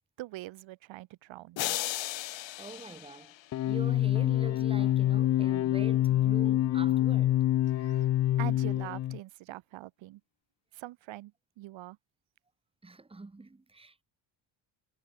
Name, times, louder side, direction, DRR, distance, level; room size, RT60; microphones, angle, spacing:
voice 1, 0.2-1.8 7.7-8.1 8.4-10.2 10.7-12.0, right 16 dB, 75° right, 2.1 m, -43 dB
sound 1, 1.6-3.9, left 16 dB, 70° left, 2.5 m, -36 dB
voice 2, 2.6-3.3 3.7-7.4 12.8-14.0, right 3 dB, 10° right, 2.6 m, -45 dB
sound 2, 3.5-9.2, left 13 dB, 40° left, 0.4 m, -26 dB
cardioid pair, 145°, 46 cm